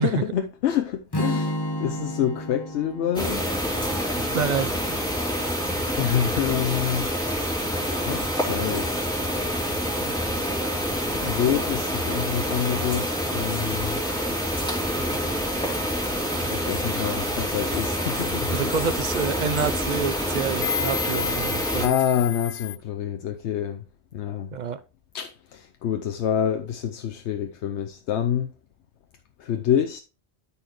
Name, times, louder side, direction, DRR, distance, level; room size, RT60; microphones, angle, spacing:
voice 1, 0.0-3.5 6.0-7.4 7.9-9.1 10.8-14.0 16.4-18.7 21.8-23.8 24.1-24.5 25.1-28.5 29.4-30.0, left 9 dB, 90° left, 0.9 m, -27 dB
Strum, 1.1-5.3, left 1 dB, 25° left, 0.8 m, -32 dB
sound 1, 3.1-21.9, equal, 5° left, 3.3 m, -27 dB
voice 2, 4.3-4.7 18.5-21.9 24.5-24.8, right 6 dB, 50° right, 0.6 m, -27 dB
sound 2, 17.7-22.8, left 10 dB, 60° left, 0.7 m, -34 dB
13.0 x 4.3 x 3.1 m
omnidirectional pair, 1.1 m